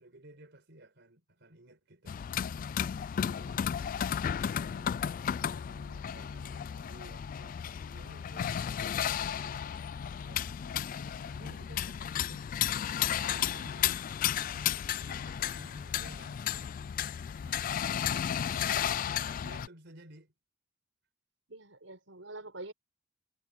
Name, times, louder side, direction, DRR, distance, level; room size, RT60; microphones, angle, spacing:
voice 1, 0.0-2.2 3.3-3.8 4.2-5.1 5.4-8.6 9.3-12.4 13.2-14.1 14.3-16.5 17.4-20.3, right 1 dB, 65° right, 4.9 m, -55 dB
sound 1, 2.1-19.7, left 9 dB, 45° left, 0.3 m, -33 dB
voice 2, 21.5-22.7, right 2 dB, 85° right, 6.1 m, -45 dB
head